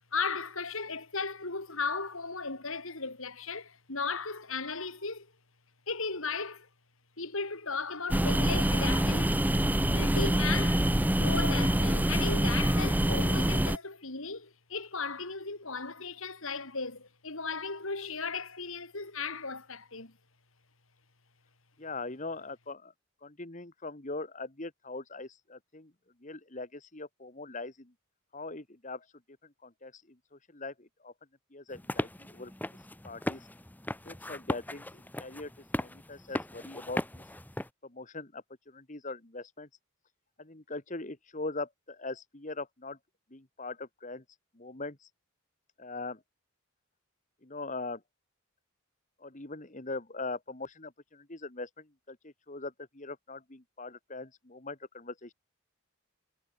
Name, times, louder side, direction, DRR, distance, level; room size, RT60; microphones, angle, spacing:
voice 1, 0.1-5.3 5.9-6.7 7.2-9.4 9.9-20.1, left 4 dB, 70° left, 3.5 m, -36 dB
sound 1, 8.1-13.8, right 1 dB, 10° right, 0.7 m, -26 dB
voice 2, 21.8-22.9 23.2-25.9 26.2-27.9 28.3-29.1 29.6-30.0 30.3-31.1 31.5-32.5 33.0-33.5 34.1-35.5 35.8-37.2 37.8-39.7 40.4-43.0 43.3-44.2 44.6-45.1 45.8-46.2 47.4-48.0 49.2-55.3, left 3 dB, 35° left, 1.8 m, -41 dB
sound 2, 31.7-37.7, left 1 dB, 10° left, 1.2 m, -37 dB
head